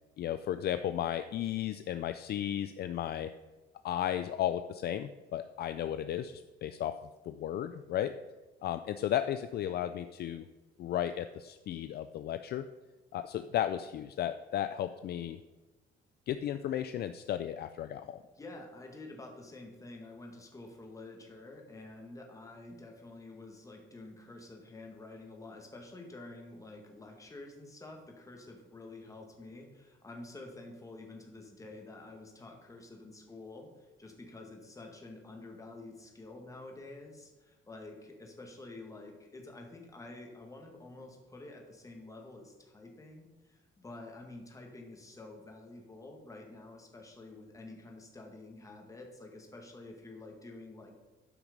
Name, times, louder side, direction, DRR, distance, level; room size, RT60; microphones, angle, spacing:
voice 1, 0.2-3.3 3.8-7.0 7.3-8.1 8.6-10.5 10.8-12.7 13.1-15.4 16.3-18.2, left 11 dB, 50° left, 10 dB, 0.4 m, -34 dB
voice 2, 18.4-50.9, left 2 dB, 15° left, 2 dB, 1.8 m, -49 dB
12.0 x 6.1 x 5.1 m, 1.2 s
cardioid pair, 160°, 21 cm